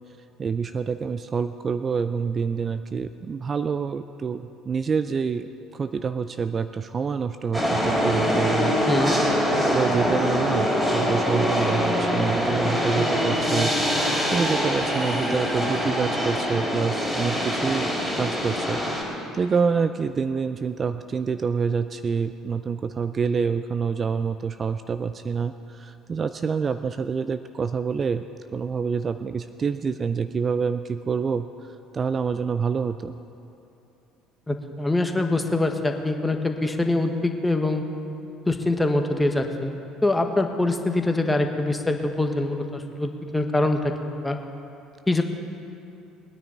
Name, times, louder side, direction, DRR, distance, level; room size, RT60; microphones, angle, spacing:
voice 1, 0.4-8.7 9.6-13.7 14.3-17.9 18.2-28.2 28.5-31.5 31.9-33.1, right 5 dB, 35° right, 11 dB, 0.4 m, -27 dB
sound 1, 7.5-19.0, equal, 15° right, 3.7 m, -24 dB
voice 2, 34.5-37.8 38.5-43.9 44.2-44.4 45.1-45.2, left 2 dB, 10° left, 5 dB, 1.3 m, -24 dB
20.0 x 9.8 x 4.4 m, 2.7 s
hypercardioid pair, 60°, 0 cm